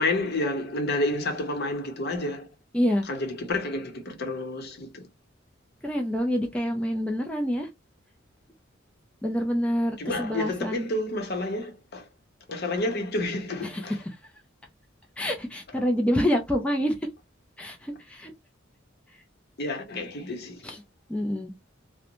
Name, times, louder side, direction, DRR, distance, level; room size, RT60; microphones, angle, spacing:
voice 1, 0.0-2.5 3.1-5.1 10.0-12.1 12.5-14.0 19.6-20.6, left 2 dB, 55° left, 0.7 m, -30 dB
voice 2, 2.7-3.1 5.8-7.7 9.2-10.9 13.6-13.8 15.2-16.9 17.6-18.3 20.6-20.8 21.1-21.5, equal, 5° left, 0.3 m, -27 dB
2.5 x 2.1 x 2.8 m
head